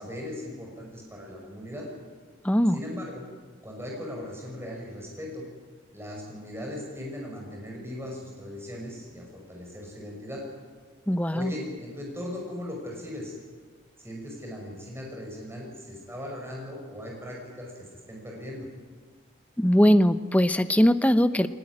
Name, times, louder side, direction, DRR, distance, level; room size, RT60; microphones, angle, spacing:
voice 1, 0.0-1.9 2.7-3.2 3.6-5.4 5.9-10.4 11.3-13.3 14.0-18.7, left 1 dB, 10° right, -1 dB, 6.0 m, -38 dB
voice 2, 2.4-2.8 11.1-11.5 19.6-21.5, equal, 5° left, 11 dB, 0.7 m, -20 dB
22.0 x 20.0 x 9.8 m, 1.5 s
head